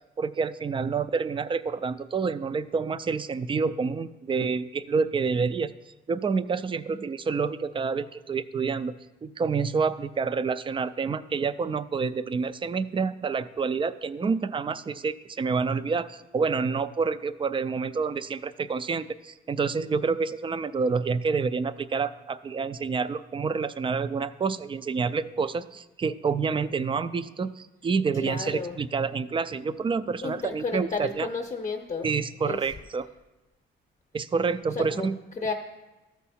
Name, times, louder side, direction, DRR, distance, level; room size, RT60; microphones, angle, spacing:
voice 1, 0.2-5.7 6.1-8.9 9.2-31.3 32.0-33.1 34.1-35.2, right 5 dB, 25° right, 15 dB, 0.4 m, -28 dB
voice 2, 28.1-28.8 30.2-32.1 32.4-32.6 34.7-35.1 35.4-35.5, left 4 dB, 35° left, 2 dB, 0.7 m, -32 dB
13.5 x 4.7 x 4.3 m, 1.1 s
cardioid pair, 95°, 20 cm